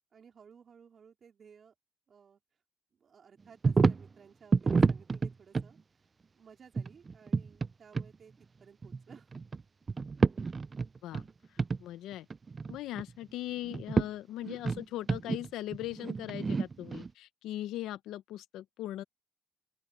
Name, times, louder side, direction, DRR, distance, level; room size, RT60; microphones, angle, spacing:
voice 1, 0.1-1.7 2.1-2.4 2.9-6.0 6.3-8.3 8.6-9.3, right 7 dB, 50° right, 4.3 m, -57 dB
sound 1, 3.6-4.1 4.5-5.7 6.8-7.7 7.9-8.1 8.8-9.6 9.9-11.3 11.6-11.8 12.1-13.1 13.7-14.1 14.4-17.1, right 4 dB, 35° right, 0.4 m, -29 dB
voice 2, 11.0-12.3 12.7-19.0, left 14 dB, 90° left, 0.8 m, -40 dB
open air
cardioid pair, 90°, 0 cm